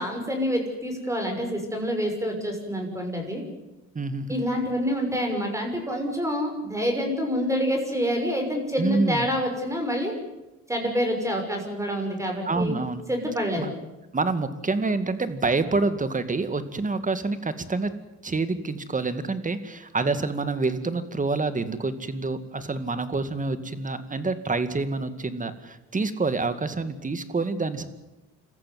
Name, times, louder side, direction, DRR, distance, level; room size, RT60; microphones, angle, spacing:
voice 1, 0.0-3.4 4.3-10.1 10.7-12.7 13.1-13.7, equal, 10° right, 3 dB, 6.3 m, -27 dB
voice 2, 3.9-4.4 8.8-9.3 12.5-13.0 13.6-13.7 14.1-17.9 18.2-27.9, right 3 dB, 25° right, 11 dB, 2.1 m, -27 dB
27.0 x 14.5 x 9.5 m, 1.0 s
cardioid pair, 90°, 30 cm